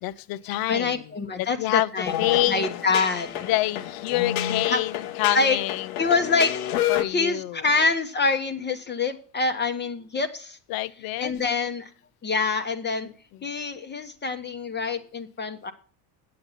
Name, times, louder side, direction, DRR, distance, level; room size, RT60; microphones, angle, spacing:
voice 1, 0.0-1.0 1.4-2.7 3.5-5.9 6.9-7.6 10.7-11.3, left 16 dB, 55° left, 0.7 m, -27 dB
voice 2, 0.7-2.2 2.5-3.5 4.7-4.8 5.3-5.6 6.0-6.5 7.1-10.6 11.2-11.9 12.2-13.1 13.4-15.7, left 4 dB, 25° left, 1.0 m, -25 dB
sound 1, 2.0-7.0, left 12 dB, 75° left, 1.0 m, -29 dB
8.5 x 7.8 x 5.6 m
supercardioid pair, 95°, 44 cm